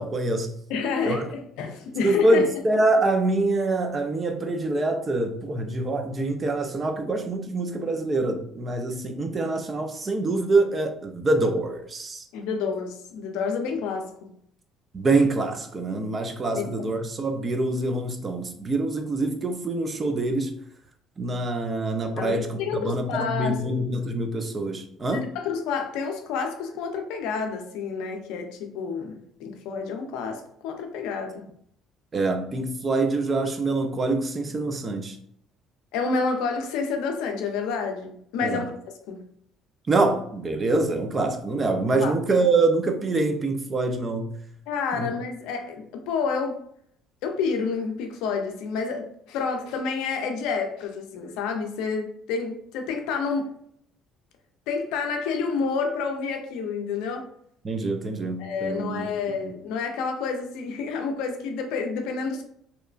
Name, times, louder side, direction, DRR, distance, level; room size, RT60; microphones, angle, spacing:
voice 1, 0.0-0.5 1.0-1.2 2.0-12.2 14.9-20.5 21.2-25.3 32.1-35.2 38.4-38.6 39.9-44.3 44.9-45.1 57.6-59.1 59.4-59.5, right 2 dB, 30° right, 0.4 m, -25 dB
voice 2, 0.7-2.5 12.3-14.3 16.6-16.7 22.2-23.6 25.1-31.4 35.9-38.7 39.1-39.2 42.0-42.1 44.7-46.6 47.2-53.5 54.7-57.3 58.4-62.4, left 5 dB, 80° left, 0.4 m, -29 dB
2.9 x 2.2 x 2.3 m
cardioid pair, 105°, 0 cm